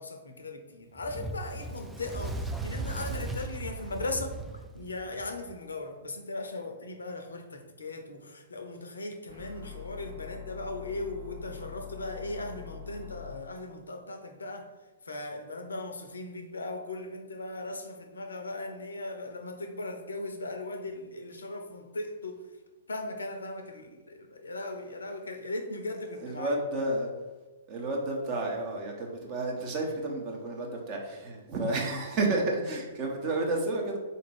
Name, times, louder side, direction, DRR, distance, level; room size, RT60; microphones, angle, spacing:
voice 1, 0.0-14.7 15.0-22.4 22.9-26.6, left 2 dB, 75° left, 5 dB, 0.6 m, -38 dB
Fire, 1.0-5.5, right 2 dB, 5° right, 0.3 m, -37 dB
sound 1, 9.3-13.3, left 7 dB, 80° right, 1.5 m, -44 dB
voice 2, 26.2-27.1 27.7-34.0, right 2 dB, 35° right, 0 dB, 1.0 m, -31 dB
4.0 x 2.6 x 4.7 m, 1.2 s
figure-of-eight pair, 110°, 0 cm